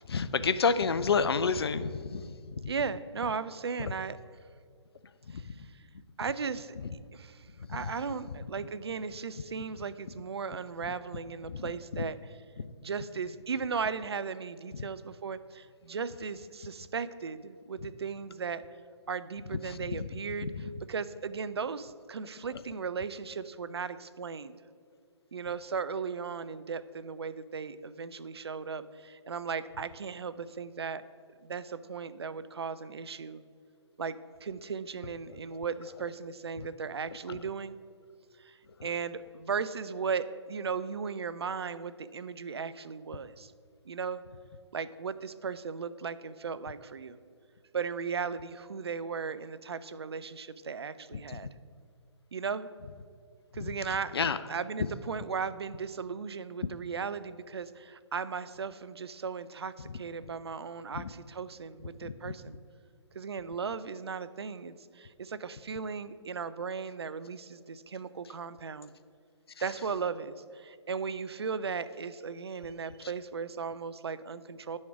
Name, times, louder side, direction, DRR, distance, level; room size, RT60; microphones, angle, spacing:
voice 1, 0.1-2.7 5.3-5.7 7.7-7.9 10.8-10.9 11.5-11.6 11.9-12.0 12.6-12.7 19.6-20.1 20.4-20.6 37.3-37.4 51.1-51.4 53.6-53.7 54.1-54.4 59.9-60.0 60.9-61.1 62.0-62.3, left 5 dB, 55° left, 13 dB, 0.4 m, -30 dB
voice 2, 2.7-4.2 5.3-5.8 6.2-6.8 7.1-12.2 12.8-18.6 19.1-20.5 20.9-24.5 25.3-31.0 31.4-33.4 34.0-37.8 38.4-43.5 43.9-44.2 44.7-47.2 47.7-51.5 52.3-52.7 53.5-54.2 54.5-62.5 63.1-68.9 69.6-74.8, right 5 dB, 60° right, 14 dB, 0.4 m, -36 dB
9.1 x 6.4 x 4.7 m, 2.2 s
figure-of-eight pair, 135°, 15 cm